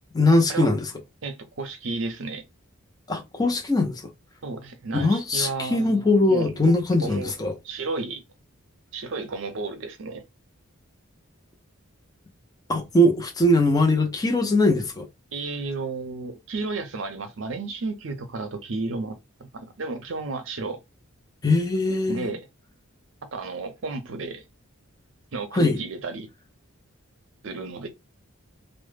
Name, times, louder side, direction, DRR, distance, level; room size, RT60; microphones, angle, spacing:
voice 1, 0.1-0.9 3.1-4.0 4.9-7.5 12.7-15.1 21.4-22.3 25.5-25.8, left 1 dB, 15° left, 0.4 m, -21 dB
voice 2, 1.2-2.4 4.4-6.6 7.0-7.3 7.6-8.2 8.9-10.2 15.3-19.2 19.5-20.8 22.1-22.5 23.3-24.4 25.3-26.3 27.4-27.9, right 3 dB, 60° right, 0.6 m, -32 dB
2.0 x 2.0 x 3.2 m
head